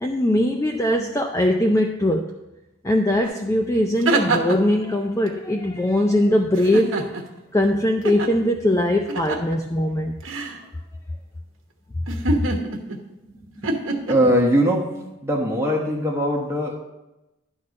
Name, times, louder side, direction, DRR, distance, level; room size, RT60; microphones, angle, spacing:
voice 1, 0.0-2.3 2.8-7.0 7.5-10.1, left 1 dB, 15° left, 3 dB, 0.4 m, -21 dB
sound 1, 3.2-3.3 3.7-4.7 6.6-7.4 8.0-8.3 9.1-9.5 10.2-10.6 12.1-13.0 13.6-14.1, right 2 dB, 80° right, 1.2 m, -25 dB
voice 2, 13.3-13.7 14.1-14.9 15.2-16.8, equal, 15° right, -2 dB, 1.3 m, -21 dB
11.0 x 4.3 x 6.4 m, 0.99 s
head